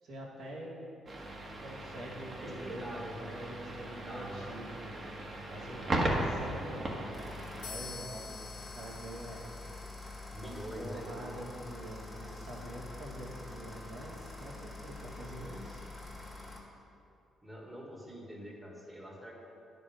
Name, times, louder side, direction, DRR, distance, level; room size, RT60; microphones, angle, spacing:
voice 1, 0.0-0.8 1.6-5.0 5.5-7.1 7.6-8.3 8.7-9.4 10.3-15.8, right 1 dB, 75° right, -5 dB, 2.0 m, -45 dB
sound 1, 1.1-7.7, right 1 dB, 40° right, 1.5 m, -37 dB
voice 2, 2.4-3.3 3.8-4.6 5.8-6.0 10.3-11.2 17.4-19.3, equal, 5° right, -2 dB, 1.6 m, -45 dB
sound 2, 7.1-16.6, left 2 dB, 15° left, 1.8 m, -46 dB
sound 3, 7.6-11.4, left 6 dB, 80° left, 0.9 m, -49 dB
9.8 x 5.2 x 5.2 m, 2.7 s
cardioid pair, 90°, 0 cm